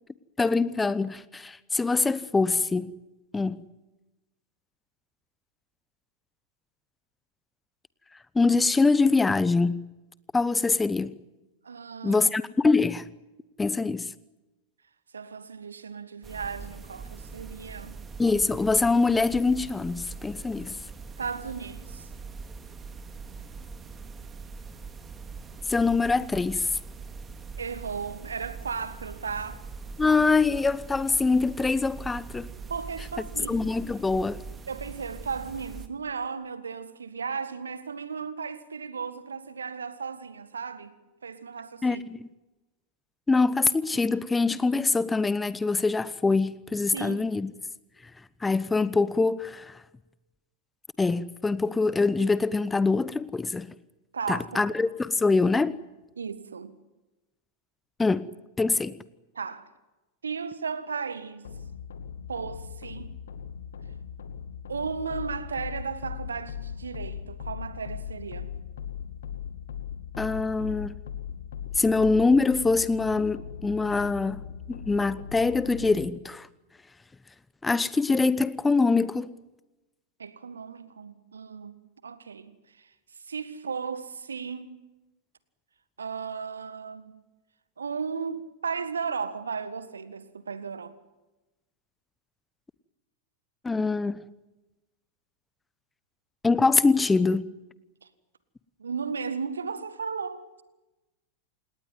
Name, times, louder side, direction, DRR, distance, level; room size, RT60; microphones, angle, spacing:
voice 1, 0.4-2.9 3.3-3.6 8.3-9.8 10.3-11.2 12.0-13.1 13.6-14.1 18.2-20.8 25.7-26.7 30.0-32.5 33.5-34.4 41.8-42.3 43.3-47.5 48.4-49.8 51.0-53.7 54.3-55.8 58.0-58.3 58.6-59.0 70.2-71.0 71.7-74.4 74.7-76.5 77.6-79.3 93.6-94.2 96.4-97.5, left 3 dB, 10° left, 0.9 m, -24 dB
voice 2, 11.6-12.3 15.1-18.0 21.2-22.1 27.6-29.6 32.7-33.6 34.7-41.0 41.2-42.0 46.9-47.4 54.1-54.7 56.1-56.8 59.3-59.7 60.2-61.6 62.3-63.2 64.7-68.5 80.2-82.9 83.2-84.8 86.0-87.2 87.8-91.0 98.0-98.1 98.8-100.6, right 5 dB, 70° right, 1.7 m, -35 dB
sound 1, 16.2-35.9, right 4 dB, 20° right, 2.4 m, -42 dB
sound 2, 61.4-76.1, left 8 dB, 65° left, 2.2 m, -39 dB
28.0 x 19.0 x 9.5 m
figure-of-eight pair, 90°, 0 cm